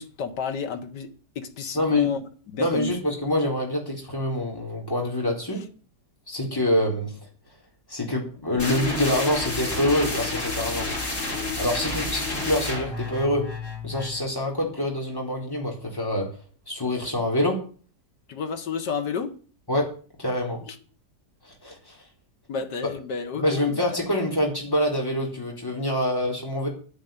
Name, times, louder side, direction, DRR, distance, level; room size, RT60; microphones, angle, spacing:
voice 1, 0.0-2.9 18.3-19.3 20.7-20.8 22.5-24.0, left 6 dB, 85° left, 2.0 m, -31 dB
voice 2, 1.7-2.1 2.6-5.6 6.3-7.1 7.9-10.9 11.6-13.5 13.8-16.3 16.7-17.6 19.7-19.9 20.2-20.6 21.4-22.0 23.4-26.7, left 1 dB, 10° left, 4.2 m, -26 dB
sound 1, 8.6-14.2, left 2 dB, 45° left, 5.4 m, -30 dB
10.5 x 10.0 x 9.1 m
omnidirectional pair, 1.8 m